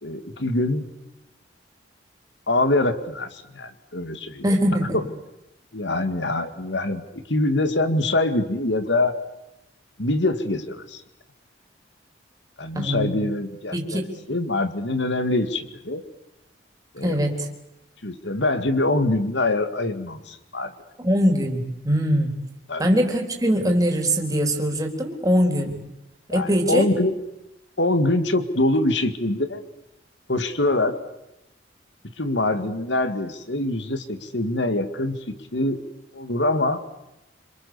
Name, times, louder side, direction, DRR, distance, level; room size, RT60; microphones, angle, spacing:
voice 1, 0.0-0.8 2.5-4.4 4.8-5.0 5.7-9.2 10.0-11.0 12.6-16.0 16.9-17.2 18.0-20.7 22.7-22.9 26.3-27.2 27.8-29.6 30.3-31.0 32.2-35.8 36.1-36.8, left 2 dB, 70° left, 10 dB, 2.2 m, -24 dB
voice 2, 4.4-5.0 12.7-13.2 13.7-14.1 17.0-17.5 21.0-22.4 22.8-25.8 26.3-26.9, equal, 20° right, 2 dB, 3.7 m, -22 dB
27.0 x 26.5 x 7.0 m, 0.91 s
head